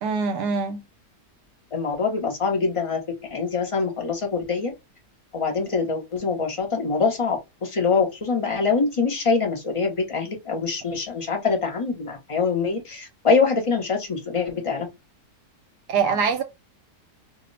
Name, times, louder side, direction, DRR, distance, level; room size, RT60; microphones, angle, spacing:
voice 1, 0.0-0.8 15.9-16.4, right 5 dB, 75° right, 1.1 m, -23 dB
voice 2, 1.7-3.0 3.3-4.7 5.3-14.9, left 4 dB, 40° left, 0.4 m, -24 dB
2.8 x 2.0 x 3.8 m
omnidirectional pair, 1.8 m